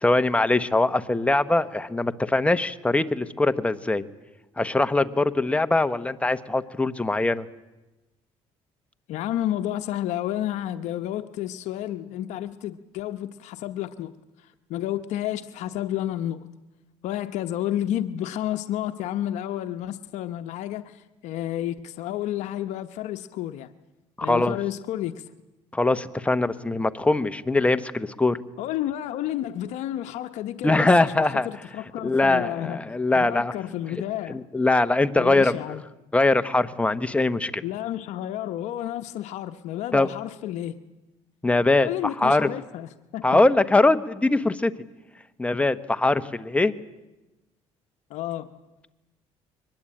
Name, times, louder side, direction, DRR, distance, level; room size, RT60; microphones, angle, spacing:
voice 1, 0.0-4.0 4.6-7.4 24.2-24.6 25.7-28.4 30.6-31.5 32.0-33.5 33.9-34.0 34.3-35.8 36.1-37.6 39.9-40.1 41.4-42.5 43.2-44.7 45.4-46.7, left 2 dB, 10° left, 11 dB, 1.0 m, -22 dB
voice 2, 9.1-14.1 14.7-16.4 17.0-23.7 24.2-25.2 28.6-32.8 33.1-34.4 35.2-35.8 37.6-40.8 41.8-43.4 48.1-48.5, left 12 dB, 75° left, 9 dB, 0.9 m, -31 dB
23.0 x 20.5 x 8.7 m, 1.1 s
cardioid pair, 110°, 12 cm